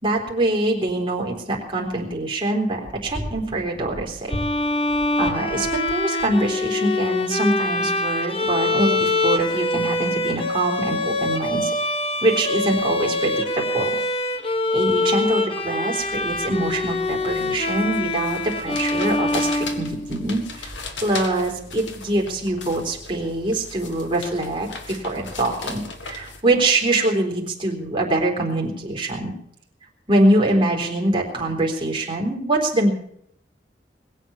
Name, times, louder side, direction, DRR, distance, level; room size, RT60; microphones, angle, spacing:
voice 1, 0.0-4.4 5.2-11.7 12.2-13.9 14.7-20.7 21.0-29.3 30.1-32.9, right 1 dB, 25° right, -1 dB, 3.8 m, -24 dB
Bowed string instrument, 4.3-20.3, left 2 dB, 30° left, 1.3 m, -24 dB
sound 1, 16.0-26.4, left 4 dB, 90° left, 1.9 m, -38 dB
21.0 x 8.3 x 7.1 m, 0.68 s
head